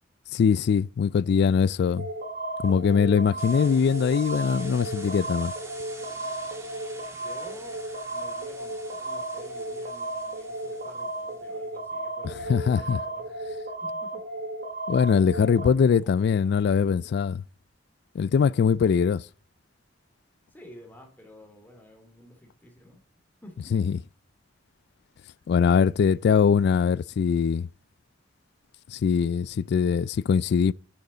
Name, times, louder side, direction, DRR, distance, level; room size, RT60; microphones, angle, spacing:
voice 1, 0.3-2.1 2.6-5.5 12.5-13.0 14.9-17.4 18.1-19.2 23.7-24.0 25.5-27.7 28.9-30.7, left 6 dB, 60° left, 0.3 m, -22 dB
sound 1, 2.0-15.7, right 1 dB, 55° right, 1.5 m, -34 dB
sound 2, 3.4-11.6, right 2 dB, 15° right, 1.8 m, -47 dB
voice 2, 7.1-7.8 8.1-13.3 13.8-14.2 15.6-17.2 20.5-23.0 23.4-23.8, left 1 dB, 10° left, 2.5 m, -50 dB
10.5 x 6.6 x 3.9 m
head